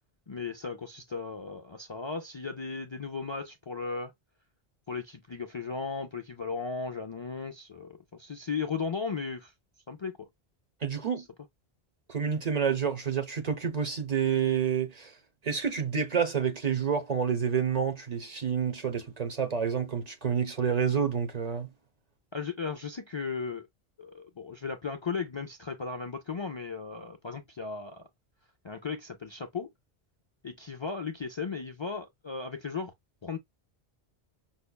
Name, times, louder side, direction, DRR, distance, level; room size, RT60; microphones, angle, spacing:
voice 1, 0.3-4.1 4.9-9.5 9.9-10.3 11.0-11.2 22.3-23.7 24.0-28.0 28.6-29.7 30.4-32.9 33.2-33.4, left 5 dB, 50° left, 0.3 m, -36 dB
voice 2, 10.8-11.3 12.1-15.1 15.4-21.7, right 7 dB, 45° right, 0.8 m, -28 dB
5.5 x 2.1 x 2.2 m
omnidirectional pair, 1.1 m